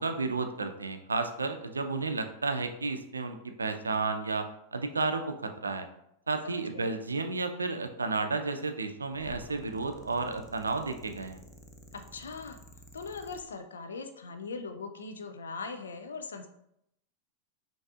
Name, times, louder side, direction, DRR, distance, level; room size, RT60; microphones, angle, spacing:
voice 1, 0.0-5.9 6.3-11.4, right 3 dB, 85° right, 7 dB, 0.4 m, -32 dB
voice 2, 6.4-7.0 11.9-12.6 12.9-16.5, left 4 dB, 75° left, 7 dB, 0.3 m, -40 dB
sound 1, 9.1-13.4, equal, 10° left, 0.6 m, -51 dB
5.5 x 2.6 x 2.4 m, 0.78 s
figure-of-eight pair, 95°, 0 cm